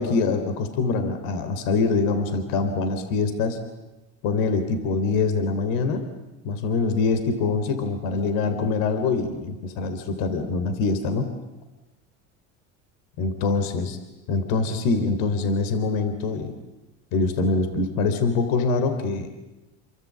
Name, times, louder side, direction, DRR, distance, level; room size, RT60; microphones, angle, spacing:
voice 1, 0.0-3.6 4.2-6.1 6.4-11.3 13.2-13.9 14.3-16.6 17.1-19.3, left 3 dB, 70° left, 8 dB, 3.5 m, -24 dB
28.5 x 23.5 x 8.6 m, 1.0 s
supercardioid pair, 90°, 35 cm